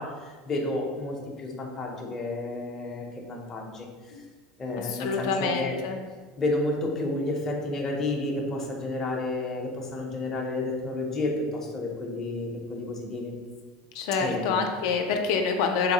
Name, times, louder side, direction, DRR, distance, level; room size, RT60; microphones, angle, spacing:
voice 1, 0.0-3.9 4.2-4.3 4.6-5.8 6.4-13.4 14.2-14.7, left 2 dB, 15° left, -1 dB, 0.5 m, -31 dB
voice 2, 4.9-6.0 13.9-15.9, left 5 dB, 70° left, 4 dB, 0.4 m, -26 dB
4.0 x 2.8 x 2.7 m, 1.4 s
cardioid pair, 165°, 2 cm